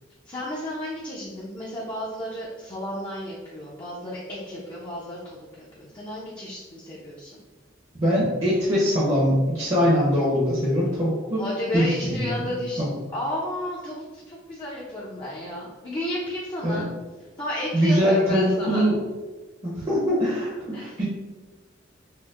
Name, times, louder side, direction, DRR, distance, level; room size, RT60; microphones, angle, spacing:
voice 1, 0.2-7.3 11.4-12.8 13.1-16.9 17.4-18.9 20.7-21.0, equal, 25° left, -6 dB, 0.5 m, -32 dB
voice 2, 8.0-11.4 11.7-12.9 16.6-16.8 17.7-19.0 19.6-21.0, equal, 30° right, -7 dB, 0.7 m, -22 dB
4.3 x 2.0 x 2.4 m, 1.2 s
head